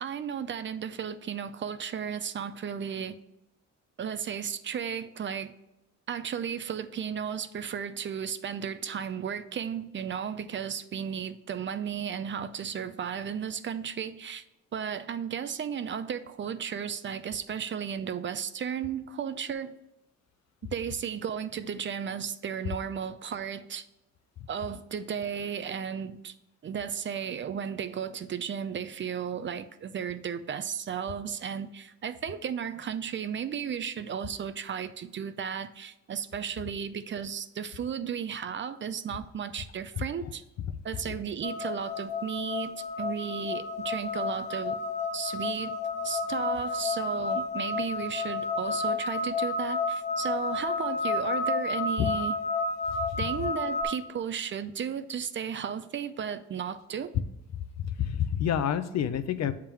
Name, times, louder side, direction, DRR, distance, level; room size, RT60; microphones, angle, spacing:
voice 1, 0.0-3.2 4.0-5.5 6.1-14.4 14.7-19.8 20.6-23.8 24.5-26.3 26.6-40.4 40.8-44.8 45.1-45.8 46.0-52.3 53.2-57.1, right 8 dB, 40° right, 0.5 m, -34 dB
sound 1, 41.4-53.8, left 3 dB, 25° left, 1.2 m, -31 dB
voice 2, 57.6-59.5, left 9 dB, 60° left, 0.6 m, -29 dB
7.3 x 3.7 x 4.5 m
cardioid pair, 90°, 30 cm